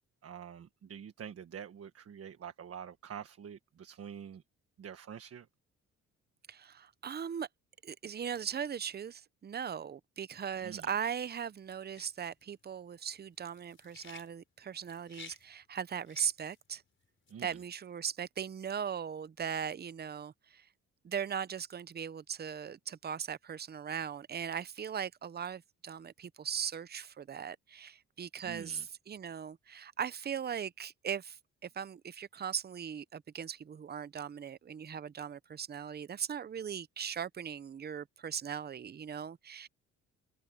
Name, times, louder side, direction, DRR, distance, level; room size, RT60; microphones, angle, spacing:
voice 1, 0.2-4.4 4.8-5.5 10.6-10.9 17.3-17.6 28.4-28.9, right 8 dB, 50° right, 1.4 m, -46 dB
voice 2, 6.5-7.5 7.8-16.8 17.4-20.7 21.0-39.7, right 8 dB, 35° right, 0.7 m, -39 dB
sound 1, 11.2-17.7, left 5 dB, 40° left, 4.5 m, -55 dB
cardioid pair, 90°, 30 cm